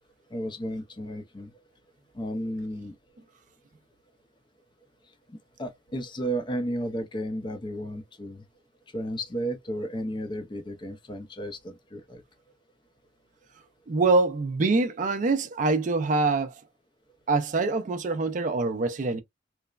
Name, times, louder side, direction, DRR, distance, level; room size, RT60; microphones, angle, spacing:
voice 1, 0.3-1.5 2.1-2.9 5.3-8.4 8.9-12.2, equal, 25° left, 0.5 m, -33 dB
voice 2, 13.9-16.5 17.3-19.2, right 3 dB, 40° right, 0.4 m, -24 dB
3.1 x 2.0 x 2.3 m
head